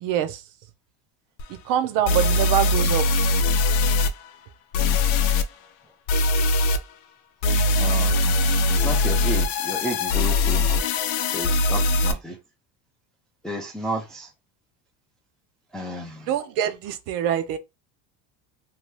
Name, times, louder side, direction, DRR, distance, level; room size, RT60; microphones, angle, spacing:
voice 1, 0.0-0.4 1.7-3.1 16.3-17.6, right 10 dB, 60° right, 0.6 m, -24 dB
sound 1, 1.4-1.5 2.1-4.1 4.7-5.4 6.1-6.8 7.4-12.1, left 2 dB, 75° left, 0.6 m, -21 dB
voice 2, 7.8-10.8 11.3-12.4 13.4-14.3 15.7-16.2, right 1 dB, ahead, 0.3 m, -32 dB
2.8 x 2.2 x 3.1 m
cardioid pair, 150°, 36 cm